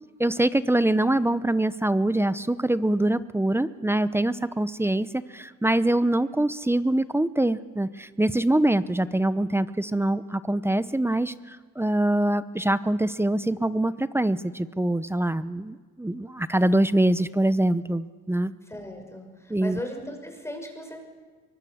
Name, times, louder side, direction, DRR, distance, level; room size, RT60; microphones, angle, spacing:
voice 1, 0.2-5.1 5.3-18.5 19.5-19.8, right 1 dB, 10° right, 14 dB, 0.8 m, -24 dB
voice 2, 18.7-21.0, left 1 dB, 10° left, 3 dB, 5.9 m, -37 dB
23.5 x 22.5 x 7.3 m, 1.5 s
cardioid pair, 90°, 30 cm